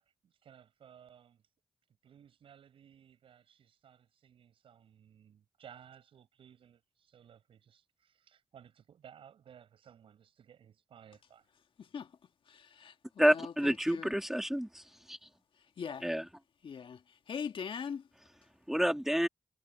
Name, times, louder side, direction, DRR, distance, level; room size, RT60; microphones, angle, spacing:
voice 1, 0.0-1.4 2.0-11.5, right 8 dB, 80° right, 5.6 m, -58 dB
voice 2, 11.8-12.1 12.5-14.1 15.6-16.1 16.6-18.1, left 6 dB, 70° left, 1.8 m, -42 dB
voice 3, 13.2-14.8 15.1-15.2 16.0-16.2 18.7-19.3, equal, 5° right, 2.5 m, -28 dB
supercardioid pair, 45°, 9 cm